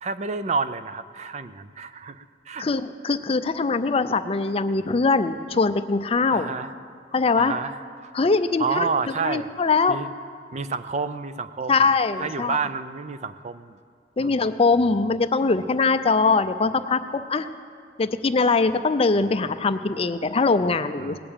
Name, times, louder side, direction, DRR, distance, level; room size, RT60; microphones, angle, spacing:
voice 1, 0.0-2.7 6.3-6.7 7.4-8.1 8.6-9.5 9.9-10.1 10.5-11.9 12.2-13.8 14.2-14.5 21.0-21.2, right 5 dB, 40° right, 12 dB, 0.4 m, -29 dB
voice 2, 2.6-6.5 7.1-7.5 8.1-8.9 9.2-10.0 11.7-12.6 14.2-17.5 18.0-21.2, left 4 dB, 35° left, 10 dB, 0.5 m, -22 dB
19.0 x 6.8 x 8.8 m, 2.1 s
head